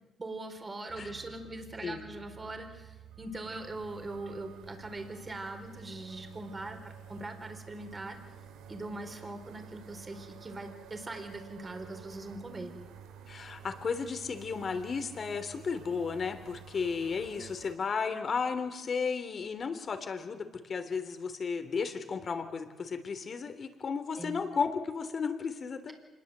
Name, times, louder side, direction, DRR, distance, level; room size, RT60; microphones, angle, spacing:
voice 1, 0.2-8.2 8.7-12.7 24.2-24.4, right 2 dB, 25° right, 5 dB, 4.4 m, -41 dB
sound 1, 0.9-17.7, right 7 dB, 90° right, 2.1 m, -51 dB
voice 2, 13.3-20.4 20.7-25.9, left 5 dB, 45° left, 8 dB, 3.3 m, -34 dB
26.0 x 21.5 x 8.1 m, 1.2 s
cardioid pair, 90°, 0 cm